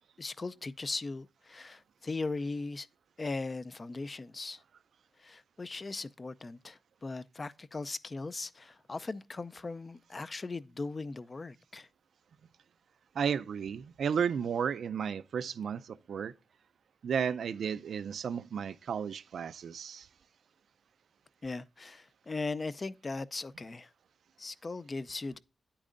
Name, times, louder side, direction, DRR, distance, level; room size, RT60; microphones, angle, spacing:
voice 1, 0.2-2.9 3.2-4.6 5.2-11.9 21.4-23.9 24.4-25.4, left 3 dB, 25° left, 0.4 m, -38 dB
voice 2, 13.1-16.3 17.0-20.1, right 7 dB, 70° right, 0.4 m, -33 dB
10.0 x 8.6 x 2.5 m
wide cardioid pair, 160°, 0 cm